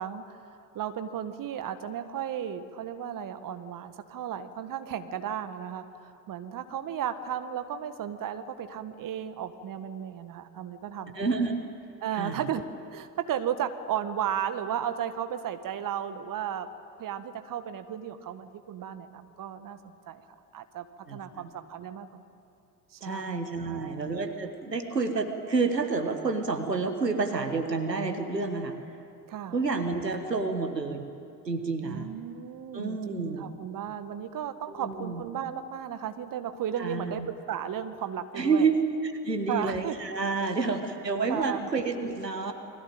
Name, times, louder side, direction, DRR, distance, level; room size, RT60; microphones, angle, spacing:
voice 1, 0.0-11.3 12.0-12.6 12.9-16.7 17.0-20.2 20.5-20.9 21.1-22.3 22.9-24.0 29.3-29.6 31.8-37.2 37.5-38.7 39.5-40.0 40.4-40.6 41.3-41.7, right 9 dB, 40° right, 9 dB, 1.7 m, -35 dB
voice 2, 11.1-11.6 12.1-12.4 21.1-21.4 23.0-28.8 29.5-31.1 31.4-32.1 32.7-33.5 34.7-35.2 36.8-37.2 38.3-42.5, right 4 dB, 90° right, 6 dB, 1.5 m, -29 dB
29.0 x 22.0 x 9.1 m, 2.6 s
figure-of-eight pair, 55°, 48 cm